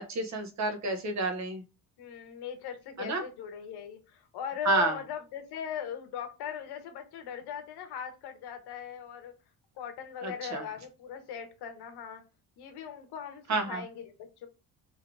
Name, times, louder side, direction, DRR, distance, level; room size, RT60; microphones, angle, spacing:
voice 1, 0.0-1.6 3.0-3.2 4.6-5.0 10.2-10.6 13.5-13.8, right 2 dB, 45° right, 6 dB, 1.1 m, -29 dB
voice 2, 2.0-9.3 9.8-12.2 12.6-14.5, left 8 dB, 80° left, 7 dB, 1.1 m, -39 dB
4.0 x 3.2 x 3.3 m, 0.30 s
cardioid pair, 135°, 39 cm